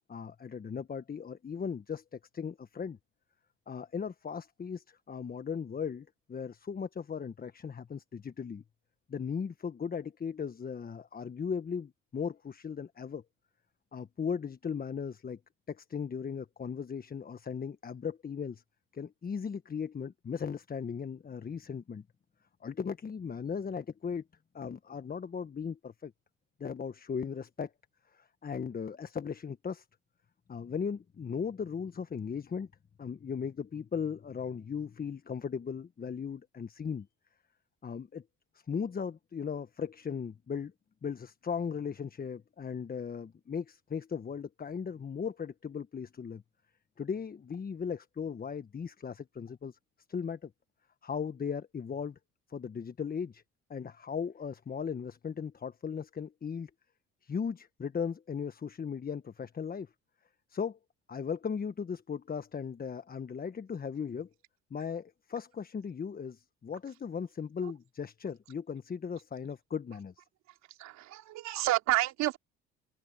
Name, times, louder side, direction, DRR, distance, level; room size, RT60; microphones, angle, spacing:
voice 1, 0.0-3.0 3.7-8.6 9.1-13.2 13.9-15.4 15.7-18.6 18.9-22.0 22.6-24.2 24.5-26.1 26.6-27.7 28.1-29.8 30.5-32.7 33.0-37.1 37.8-38.2 38.7-40.7 41.0-46.4 47.0-49.8 50.1-50.5 51.0-52.2 52.5-53.4 53.7-56.7 57.2-59.9 60.5-60.8 61.1-64.3 64.7-70.1, left 6 dB, 30° left, 1.3 m, -37 dB
voice 2, 70.8-72.4, right 16 dB, 70° right, 3.2 m, -29 dB
hypercardioid pair, 70°, 29 cm